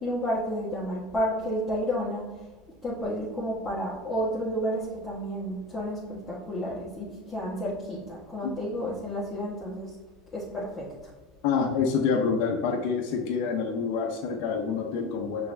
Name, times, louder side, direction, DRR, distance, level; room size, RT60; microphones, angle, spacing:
voice 1, 0.0-2.2 2.8-6.0 6.3-9.9 10.3-10.8, equal, 20° left, -8 dB, 1.3 m, -31 dB
voice 2, 11.4-15.5, left 5 dB, 65° left, 1 dB, 0.7 m, -27 dB
5.7 x 3.3 x 2.6 m, 1.3 s
supercardioid pair, 110°, 0 cm